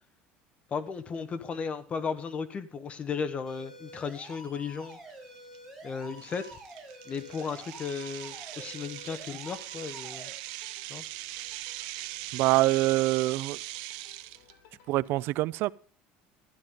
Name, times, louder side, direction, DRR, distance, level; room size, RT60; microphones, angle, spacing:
voice 1, 0.7-5.0 5.8-6.6 7.1-10.3 10.9-11.0, left 5 dB, 30° left, 1.3 m, -35 dB
sound 1, 3.5-10.3, right 1 dB, ahead, 4.7 m, -48 dB
sound 2, 4.3-4.4 4.9-5.1 5.5-5.6 6.2-14.5, right 17 dB, 80° right, 0.9 m, -41 dB
sound 3, 8.1-15.0, left 6 dB, 70° left, 5.3 m, -61 dB
voice 2, 12.3-13.6 14.9-15.7, right 18 dB, 60° right, 0.5 m, -25 dB
13.0 x 10.5 x 3.8 m
cardioid pair, 130°, 4 cm